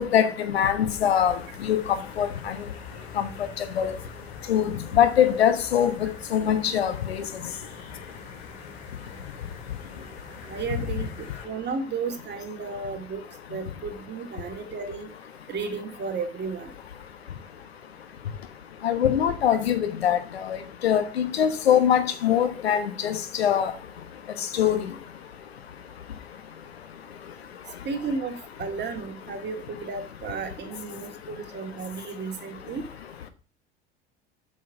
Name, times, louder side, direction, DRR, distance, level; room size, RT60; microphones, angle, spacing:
voice 1, 0.0-2.5 3.2-3.3 3.8-3.9 4.5-7.2 18.8-20.6 20.8-23.7 24.6-24.9, left 9 dB, 75° left, 1.2 m, -23 dB
sound 1, 1.3-11.4, left 4 dB, 55° left, 3.0 m, -44 dB
voice 2, 10.5-13.2 13.5-15.1 15.5-16.7 27.8-29.6 29.8-32.8, right 5 dB, 35° right, 2.3 m, -33 dB
8.1 x 6.3 x 5.8 m
figure-of-eight pair, 70°, 32 cm